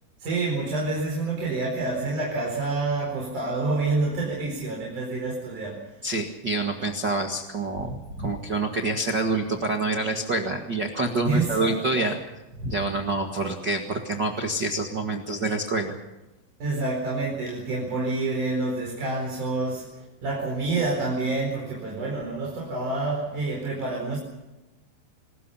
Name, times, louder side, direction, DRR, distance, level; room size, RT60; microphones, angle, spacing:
voice 1, 0.2-5.9 11.2-12.1 16.6-19.9 20.2-24.2, right 3 dB, 40° right, -1 dB, 5.8 m, -28 dB
voice 2, 6.0-12.2 12.6-15.9, right 2 dB, 85° right, 2 dB, 0.9 m, -27 dB
28.5 x 20.5 x 5.7 m, 1.0 s
omnidirectional pair, 5.5 m